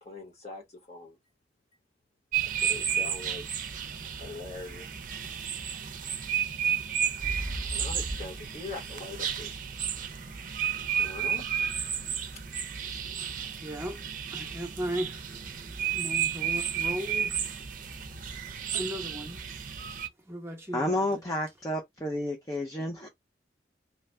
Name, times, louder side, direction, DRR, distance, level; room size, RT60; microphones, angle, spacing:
voice 1, 0.0-1.2 2.6-3.5 4.1-4.9 7.7-9.6 11.0-11.5 12.3-12.4 12.9-13.0, left 3 dB, 35° left, 1.2 m, -42 dB
sound 1, 2.3-20.1, right 8 dB, 45° right, 0.6 m, -32 dB
sound 2, 7.2-11.1 11.6-11.7, equal, 80° left, 1.2 m, -38 dB
voice 2, 13.6-14.0 14.3-15.4 15.9-17.4 18.7-19.4 20.2-21.2, equal, 15° right, 0.9 m, -36 dB
voice 3, 20.7-23.1, left 1 dB, 20° left, 0.6 m, -31 dB
3.1 x 2.3 x 3.1 m
head